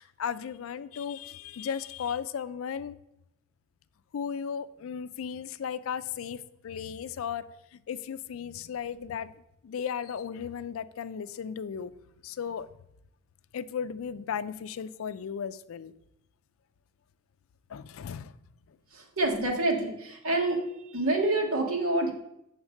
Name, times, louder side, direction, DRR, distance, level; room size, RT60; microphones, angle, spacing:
voice 1, 0.0-3.0 4.1-7.4 7.7-9.3 9.6-11.9 12.2-12.7 13.5-15.9 17.7-18.3, left 7 dB, 70° left, 14 dB, 0.4 m, -35 dB
voice 2, 18.9-20.6 20.9-22.1, right 2 dB, 85° right, 2 dB, 1.4 m, -27 dB
7.3 x 3.6 x 6.4 m, 0.83 s
head